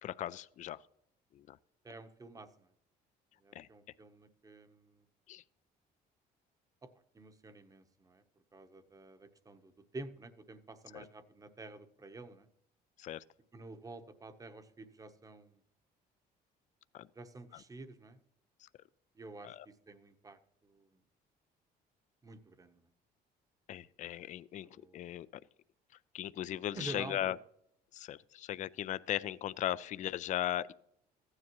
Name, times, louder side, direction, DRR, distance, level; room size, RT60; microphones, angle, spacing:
voice 1, 0.0-0.8 1.3-1.6 3.5-3.7 5.3-5.4 10.9-11.1 13.0-13.2 16.9-17.1 17.5-17.6 18.6-18.7 19.4-19.7 23.7-25.4 26.1-27.4 27.9-30.7, left 12 dB, 45° left, 0.4 m, -38 dB
voice 2, 1.8-2.7 3.4-5.0 6.8-6.9 7.1-8.2 8.5-12.5 13.5-15.6 17.2-18.2 19.2-20.9 22.2-22.9 24.6-25.1 26.7-27.3, right 2 dB, 20° right, 0.9 m, -49 dB
15.0 x 9.7 x 3.0 m
cardioid pair, 110°, 17 cm